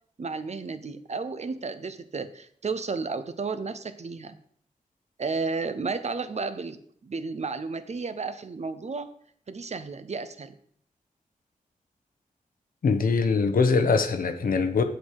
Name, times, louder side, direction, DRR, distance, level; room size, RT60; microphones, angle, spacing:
voice 1, 0.2-4.4 5.2-9.1 9.5-10.5, right 4 dB, 50° right, 11 dB, 0.8 m, -33 dB
voice 2, 12.8-14.8, left 4 dB, 85° left, 7 dB, 1.0 m, -22 dB
8.2 x 7.9 x 4.8 m, 0.62 s
wide cardioid pair, 90°, 14 cm